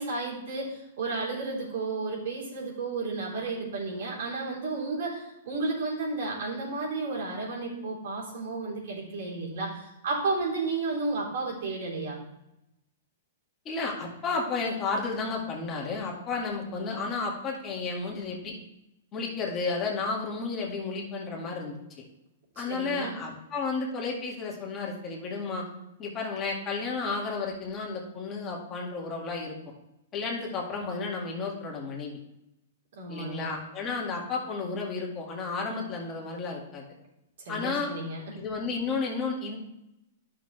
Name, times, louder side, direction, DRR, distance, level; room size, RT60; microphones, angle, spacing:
voice 1, 0.0-12.2 22.7-23.1 33.0-33.5 37.5-38.2, right 3 dB, 70° right, -4 dB, 3.6 m, -32 dB
voice 2, 13.7-18.5 19.1-21.8 22.6-25.6 26.0-29.5 30.1-32.2 33.1-36.8 37.5-37.9 38.3-39.6, left 4 dB, 25° left, -2 dB, 1.9 m, -32 dB
11.0 x 6.2 x 3.3 m, 0.87 s
hypercardioid pair, 140°, 0 cm